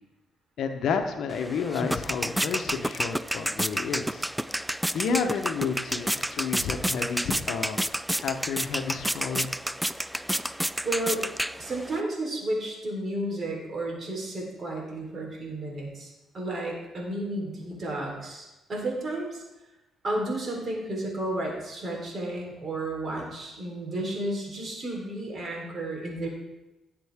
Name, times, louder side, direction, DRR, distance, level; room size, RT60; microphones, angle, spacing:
voice 1, 0.6-4.2 4.9-7.9 8.2-9.5, left 6 dB, 70° left, 5 dB, 1.0 m, -30 dB
sound 1, 1.3-12.0, right 1 dB, 5° right, 0.3 m, -30 dB
voice 2, 10.8-11.3 11.6-16.1 16.3-19.4 20.0-26.3, right 1 dB, 45° right, -1 dB, 3.8 m, -32 dB
17.0 x 7.6 x 3.7 m, 1.0 s
cardioid pair, 90°, 0 cm